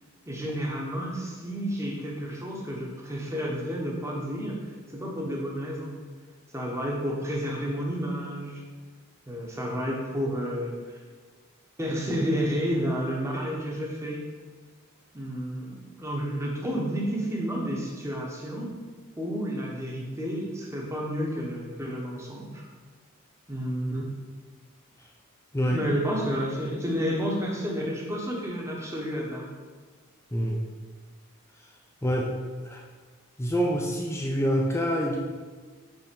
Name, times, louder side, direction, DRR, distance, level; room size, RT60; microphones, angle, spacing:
voice 1, 0.3-6.0 6.5-8.6 9.3-11.0 11.8-14.3 15.1-18.7 19.2-22.6 23.5-24.1 25.7-29.5, equal, 15° right, -2 dB, 0.9 m, -31 dB
voice 2, 32.0-32.3 32.7-32.8 33.4-35.2, equal, 10° left, -1 dB, 0.4 m, -26 dB
5.4 x 3.9 x 5.2 m, 1.5 s
head